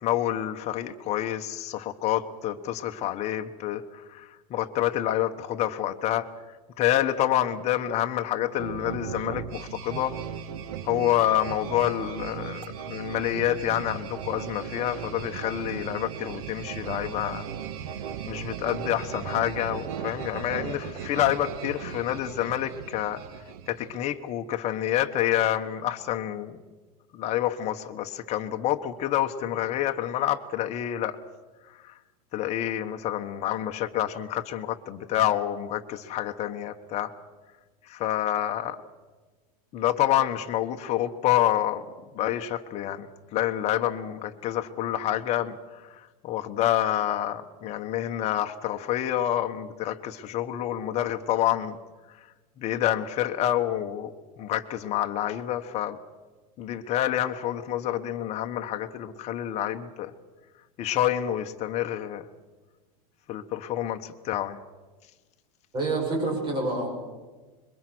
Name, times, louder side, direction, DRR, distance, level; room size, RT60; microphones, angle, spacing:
voice 1, 0.0-6.3 6.8-10.1 10.8-17.5 18.2-23.2 23.7-26.6 27.1-31.2 31.8-31.9 32.3-37.1 37.9-38.8 39.7-41.8 42.1-43.1 43.3-45.8 46.2-51.8 52.6-56.0 56.6-60.1 60.8-62.2 63.3-64.6, left 12 dB, 35° left, 5 dB, 1.3 m, -28 dB
sound 1, 8.6-24.1, right 8 dB, 70° right, 1.6 m, -37 dB
voice 2, 65.7-66.9, right 2 dB, 25° right, 0 dB, 7.1 m, -27 dB
26.0 x 22.5 x 6.2 m, 1.3 s
supercardioid pair, 155°, 20 cm